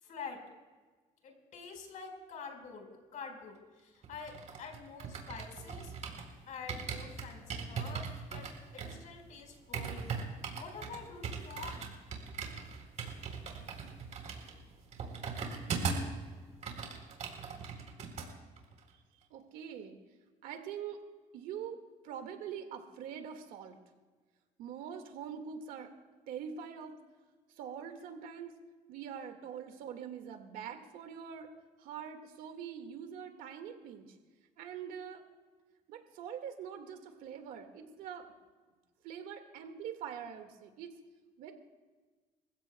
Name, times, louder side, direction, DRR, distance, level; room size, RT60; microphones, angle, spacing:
voice 1, 0.0-0.4 1.2-5.9 6.5-8.5 8.7-10.1 10.6-11.9, left 5 dB, 65° left, 2 dB, 4.4 m, -47 dB
sound 1, 4.0-6.3 6.7-16.2 16.5-18.3 18.6-18.8, right 5 dB, 60° right, 3.5 m, -40 dB
voice 2, 19.3-20.0 20.4-21.0 21.3-23.8 24.6-25.9 26.3-26.9 27.6-28.6 28.9-31.5 31.8-34.2 34.6-35.2 35.9-38.3 39.0-41.0 41.4-41.5, right 8 dB, 90° right, 6 dB, 1.8 m, -44 dB
27.5 x 15.5 x 2.2 m, 1.3 s
cardioid pair, 100°, 14 cm